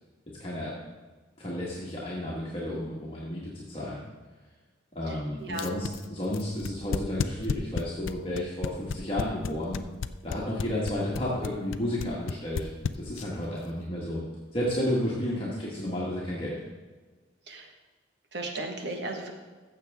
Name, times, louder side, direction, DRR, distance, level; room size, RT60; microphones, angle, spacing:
voice 1, 0.4-0.7 1.4-4.0 4.9-9.8 10.2-14.2 14.5-16.5, left 1 dB, 25° left, -6 dB, 1.5 m, -32 dB
voice 2, 5.1-5.7 17.5-17.7 18.3-19.3, right 2 dB, 55° right, 3 dB, 1.4 m, -36 dB
sound 1, 5.5-13.5, left 5 dB, 75° left, 0.4 m, -32 dB
15.0 x 7.0 x 3.6 m, 1.3 s
head